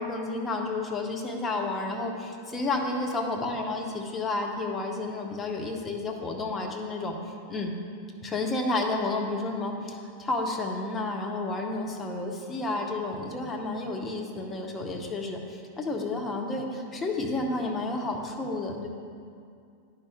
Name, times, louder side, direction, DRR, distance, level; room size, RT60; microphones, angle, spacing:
voice 1, 0.0-7.2 7.5-7.7 8.2-18.9, left 2 dB, 15° left, 1 dB, 0.8 m, -31 dB
10.5 x 5.4 x 2.3 m, 2.4 s
figure-of-eight pair, 90°, 0 cm